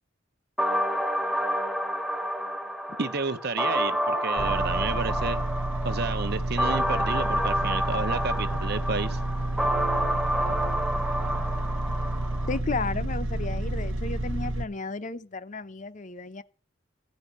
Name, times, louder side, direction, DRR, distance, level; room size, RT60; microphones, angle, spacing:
sound 1, 0.6-12.6, equal, ahead, 0.9 m, -29 dB
voice 1, 3.0-5.4 5.8-9.2, right 4 dB, 55° right, 0.9 m, -31 dB
sound 2, 4.4-14.7, right 1 dB, 85° right, 0.9 m, -30 dB
voice 2, 12.5-16.4, left 3 dB, 40° left, 0.7 m, -33 dB
16.0 x 5.3 x 8.4 m
head